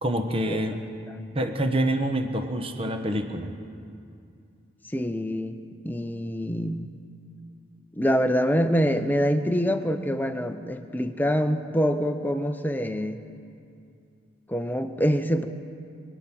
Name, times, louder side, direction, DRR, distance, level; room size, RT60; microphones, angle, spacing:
voice 1, 0.0-0.8 1.3-3.5, right 1 dB, 30° right, 6 dB, 1.0 m, -26 dB
voice 2, 4.9-5.6 5.8-7.0 7.9-13.2 14.5-15.5, equal, 10° left, 7 dB, 0.6 m, -25 dB
25.5 x 9.2 x 6.0 m, 2.5 s
head